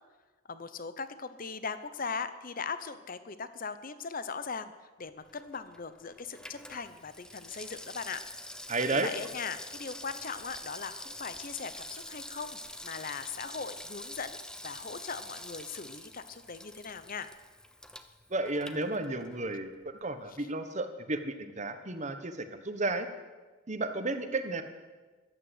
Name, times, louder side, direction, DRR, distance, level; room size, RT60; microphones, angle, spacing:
voice 1, 0.5-4.7 5.0-8.2 8.9-14.4 14.6-17.3 20.3-20.5, left 5 dB, 40° left, 12 dB, 0.8 m, -39 dB
Water tap faucet / Sink (filling or washing), 5.2-19.5 19.8-19.9, left 1 dB, 5° left, 0.6 m, -46 dB
voice 2, 8.7-9.1 18.3-23.1 23.7-24.6, right 2 dB, 35° right, 8 dB, 1.1 m, -33 dB
14.5 x 12.0 x 8.0 m, 1.3 s
head